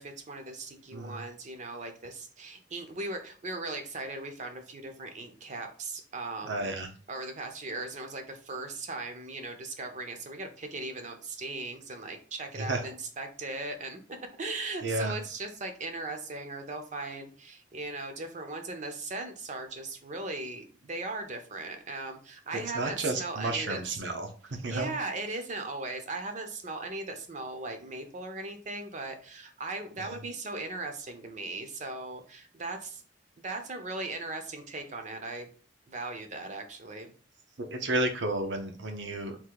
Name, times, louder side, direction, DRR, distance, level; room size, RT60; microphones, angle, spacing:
voice 1, 0.0-6.6 7.1-14.0 14.4-24.0 24.7-33.0 33.4-35.5 35.9-37.1, right 2 dB, 40° right, 6 dB, 0.7 m, -38 dB
voice 2, 6.4-6.9 12.6-12.8 14.8-15.1 22.5-24.3 24.6-24.9 30.0-30.2 37.6-39.4, right 2 dB, 80° right, 5 dB, 0.9 m, -32 dB
3.7 x 2.7 x 4.7 m, 0.40 s
head